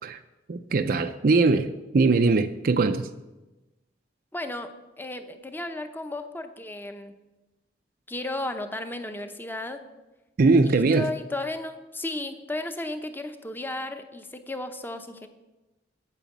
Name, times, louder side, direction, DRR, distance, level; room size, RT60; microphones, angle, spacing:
voice 1, 0.5-3.1 10.4-11.1, right 3 dB, 55° right, 0.5 m, -21 dB
voice 2, 4.3-4.7 5.0-7.1 8.1-9.8 10.7-15.3, left 2 dB, 10° left, 0.7 m, -34 dB
9.1 x 8.3 x 7.2 m
head